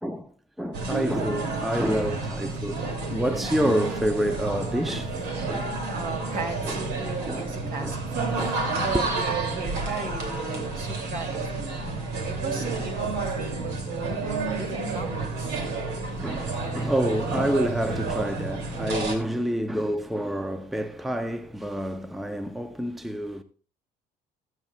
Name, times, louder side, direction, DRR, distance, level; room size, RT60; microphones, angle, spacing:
voice 1, 0.0-5.2 5.5-5.7 6.1-6.2 6.6-6.8 7.3-8.0 8.4-8.6 8.9-9.1 16.1-23.4, equal, ahead, 0.6 m, -28 dB
sound 1, 0.7-19.2, right 3 dB, 80° right, 2.6 m, -30 dB
voice 2, 3.2-3.5 5.9-11.8 12.2-13.1 13.3-15.6, right 4 dB, 55° right, 2.6 m, -36 dB
21.5 x 7.9 x 2.3 m
cardioid pair, 110°, 17 cm